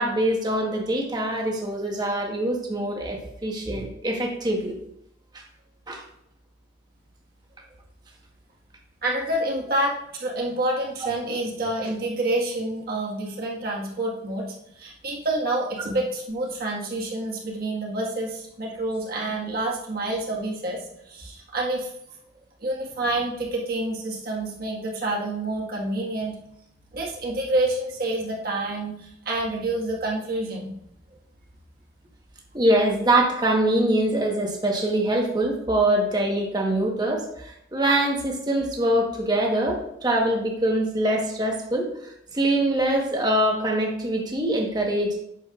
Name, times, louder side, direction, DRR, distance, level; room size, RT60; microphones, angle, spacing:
voice 1, 0.0-4.8 5.9-6.0 32.5-45.2, right 1 dB, 20° right, 0 dB, 1.2 m, -24 dB
voice 2, 9.0-21.9 22.6-26.4 26.9-30.7, right 1 dB, 50° right, -2 dB, 1.6 m, -28 dB
8.5 x 6.6 x 2.4 m, 0.76 s
head